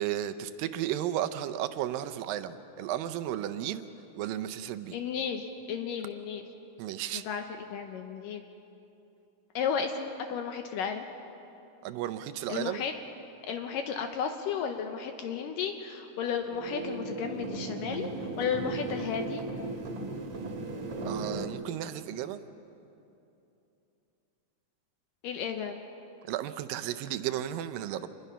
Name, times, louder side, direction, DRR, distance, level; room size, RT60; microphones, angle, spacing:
voice 1, 0.0-3.9 4.2-5.0 6.8-7.2 11.8-12.8 21.0-22.4 26.2-28.1, right 12 dB, 80° right, 11 dB, 2.3 m, -34 dB
voice 2, 4.9-6.4 7.1-7.4 7.7-8.4 9.6-11.1 12.5-12.9 13.4-19.4 25.2-25.8, left 7 dB, 75° left, 5 dB, 2.3 m, -33 dB
sound 1, 16.4-21.4, right 3 dB, 50° right, 2.3 m, -36 dB
26.5 x 21.0 x 5.6 m, 2.8 s
omnidirectional pair, 4.3 m